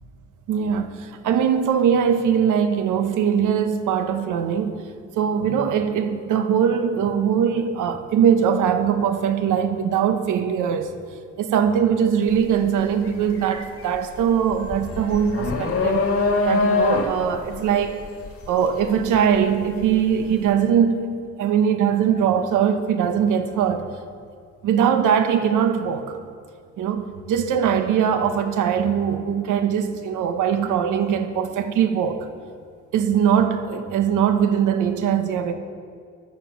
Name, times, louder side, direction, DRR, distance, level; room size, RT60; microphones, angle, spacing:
voice 1, 0.5-4.8 5.2-10.9 11.4-16.1 16.4-18.0 18.5-21.1 21.4-23.9 24.6-26.2 26.8-32.3 32.9-35.5, right 8 dB, 85° right, 1.3 m, -21 dB
sound 1, 12.3-12.5 12.9-19.9, left 3 dB, 50° left, 2.4 m, -24 dB
15.5 x 11.0 x 7.5 m
cardioid pair, 90°, 30 cm